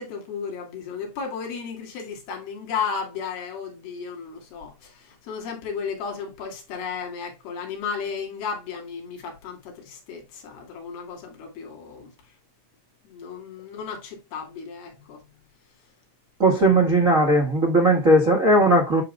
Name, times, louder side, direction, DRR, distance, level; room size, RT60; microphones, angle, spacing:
voice 1, 0.0-12.1 13.0-15.4, left 6 dB, 65° left, 4.3 m, -34 dB
voice 2, 16.4-19.0, right 1 dB, 70° right, 0.7 m, -18 dB
9.9 x 6.4 x 2.2 m
omnidirectional pair, 4.8 m